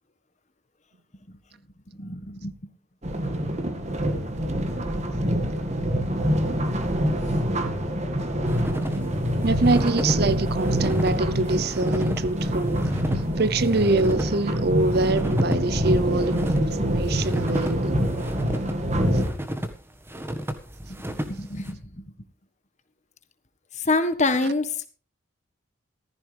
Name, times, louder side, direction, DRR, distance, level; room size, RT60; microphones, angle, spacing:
voice 1, 1.9-2.7 20.9-22.1 23.7-24.9, left 3 dB, 35° left, 1.5 m, -27 dB
sound 1, 3.0-19.3, equal, 35° right, 2.0 m, -25 dB
sound 2, 8.5-21.7, equal, 10° right, 1.6 m, -34 dB
voice 2, 9.4-12.9 13.4-18.0 19.1-19.2, right 2 dB, 50° right, 0.7 m, -25 dB
15.0 x 14.5 x 3.4 m
head